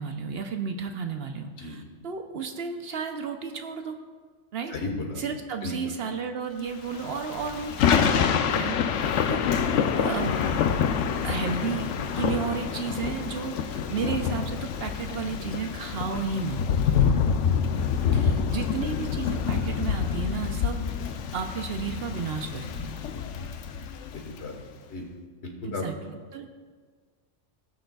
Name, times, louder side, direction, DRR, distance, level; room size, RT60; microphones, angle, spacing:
voice 1, 0.0-3.9 4.5-4.8 5.2-8.2 8.6-9.4 10.0-10.4 11.2-16.6 18.1-20.8 21.3-23.0 25.6-25.9 26.3-26.5, right 5 dB, 65° right, 6 dB, 0.8 m, -33 dB
voice 2, 4.7-5.2 5.6-5.7 9.1-9.2 16.7-17.1 23.1-23.2 24.2-24.5 24.9-25.0 25.4-25.8, left 3 dB, 65° left, 2 dB, 1.5 m, -34 dB
Thunder / Rain, 6.9-24.4, left 7 dB, 85° left, 0.9 m, -27 dB
18.0 x 6.5 x 2.3 m, 1.5 s
omnidirectional pair, 1.2 m